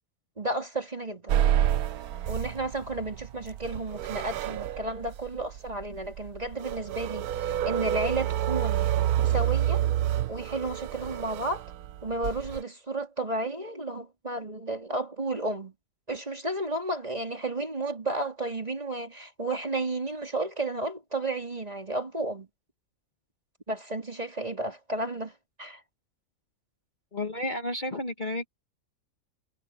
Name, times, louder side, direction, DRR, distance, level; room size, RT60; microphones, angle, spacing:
voice 1, 0.4-1.4 2.3-8.9 9.2-9.8 10.3-11.6 12.0-15.7 16.1-22.5 23.7-25.3 25.6-25.8, right 2 dB, 25° right, 3.5 m, -32 dB
sound 1, 1.3-12.6, right 11 dB, 80° right, 1.2 m, -28 dB
voice 2, 27.1-28.5, left 1 dB, 35° left, 1.4 m, -31 dB
omnidirectional pair, 1.6 m